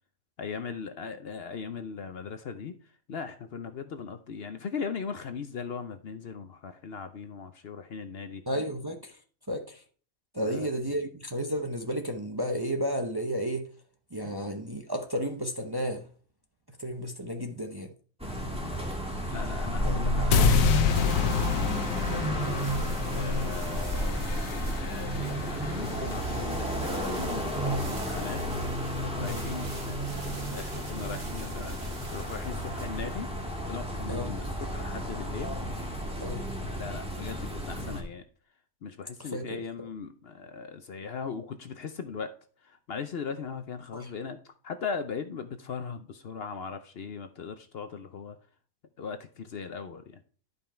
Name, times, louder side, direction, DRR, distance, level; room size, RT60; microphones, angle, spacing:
voice 1, 0.4-2.7 3.1-8.4 10.4-10.7 14.2-14.3 19.3-22.5 23.1-24.2 24.5-28.4 28.7-31.8 32.1-33.3 33.7-35.6 36.8-38.2 38.8-42.3 42.6-48.4 49.0-50.2, left 5 dB, 55° left, 0.8 m, -39 dB
voice 2, 8.5-9.2 9.5-9.8 10.3-13.7 14.1-16.1 16.8-17.9 29.2-29.5 34.1-34.3 36.2-36.5 39.2-39.6 43.9-44.1, equal, 20° right, 0.7 m, -32 dB
sound 1, 18.2-38.0, equal, 5° right, 1.7 m, -32 dB
sound 2, 20.3-26.5, left 8 dB, 90° left, 1.2 m, -28 dB
sound 3, 20.7-33.8, right 1 dB, 60° right, 2.7 m, -47 dB
11.5 x 5.4 x 4.4 m
omnidirectional pair, 1.4 m